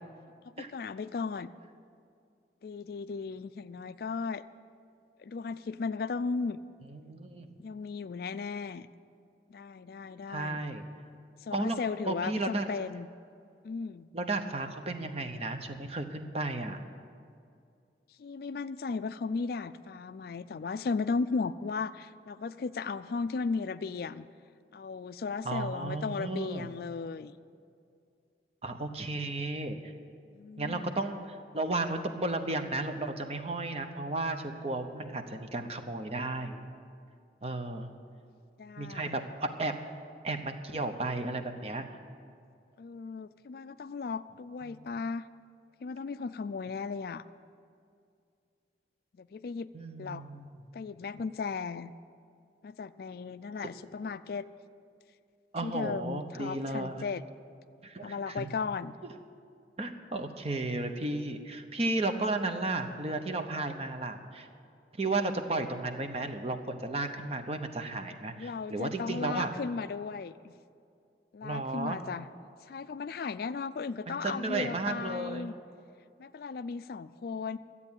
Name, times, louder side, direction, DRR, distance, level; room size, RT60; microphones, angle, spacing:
voice 1, 0.6-1.5 2.6-4.4 5.2-6.6 7.6-8.9 9.5-10.6 11.4-13.1 13.6-14.1 18.2-24.3 24.7-27.3 30.3-31.1 38.6-39.2 42.8-45.3 45.8-47.2 49.2-49.7 50.0-50.2 50.7-51.9 52.6-54.5 55.6-57.2 58.0-58.9 68.4-70.5 71.3-72.3 72.6-75.6 76.2-77.6, left 4 dB, 55° left, 14 dB, 0.3 m, -36 dB
voice 2, 6.9-7.5 10.3-10.8 11.5-11.8 12.1-12.7 14.1-16.8 25.4-26.7 28.6-29.9 30.6-36.6 37.4-37.9 38.8-39.8 40.2-41.9 44.7-44.8 49.7-50.5 55.5-57.0 57.8-58.5 59.8-64.5 65.0-69.5 71.4-72.0 74.1-75.5, right 2 dB, 35° right, 6 dB, 0.8 m, -34 dB
13.0 x 8.4 x 8.9 m, 2.4 s
head